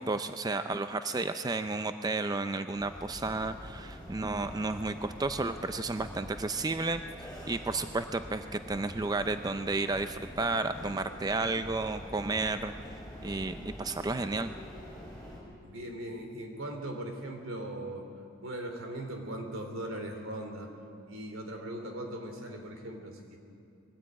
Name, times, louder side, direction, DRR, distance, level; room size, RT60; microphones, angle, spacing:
voice 1, 0.0-7.0 7.5-12.7 13.2-14.5, right 3 dB, 20° right, 9 dB, 0.4 m, -32 dB
sound 1, 2.7-15.4, equal, 5° left, 5.9 m, -45 dB
voice 2, 15.6-18.1 18.4-20.7 21.1-23.4, right 1 dB, 80° right, 4 dB, 2.9 m, -39 dB
21.0 x 14.0 x 8.8 m, 2.5 s
head